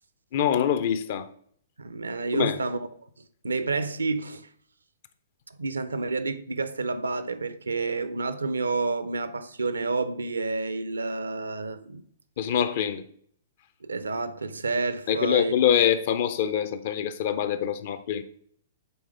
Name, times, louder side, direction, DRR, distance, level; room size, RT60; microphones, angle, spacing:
voice 1, 0.3-1.3 2.3-2.6 12.4-13.1 15.1-18.2, left 9 dB, 45° left, 0.5 m, -24 dB
voice 2, 1.8-2.9 3.4-4.5 5.5-12.0 13.8-15.5, right 3 dB, 75° right, 0.5 m, -29 dB
8.6 x 3.5 x 3.3 m
figure-of-eight pair, 115°, 0 cm